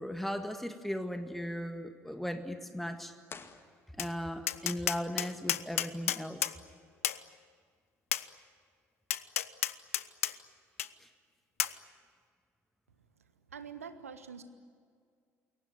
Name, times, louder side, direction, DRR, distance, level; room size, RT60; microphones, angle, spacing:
voice 1, 0.0-3.1 3.9-6.5 11.0-11.1, equal, ahead, 8 dB, 1.8 m, -37 dB
sound 1, 3.2-4.4, left 5 dB, 30° left, 2.0 m, -50 dB
Tap, 4.0-4.1 4.5-6.6 7.0-7.2 8.1-8.3 9.1-10.3 10.8-10.9 11.6-11.8, left 12 dB, 75° left, 0.7 m, -31 dB
voice 2, 13.5-14.4, right 6 dB, 80° right, 11 dB, 1.4 m, -45 dB
28.5 x 22.5 x 9.4 m, 2.1 s
figure-of-eight pair, 55°, 8 cm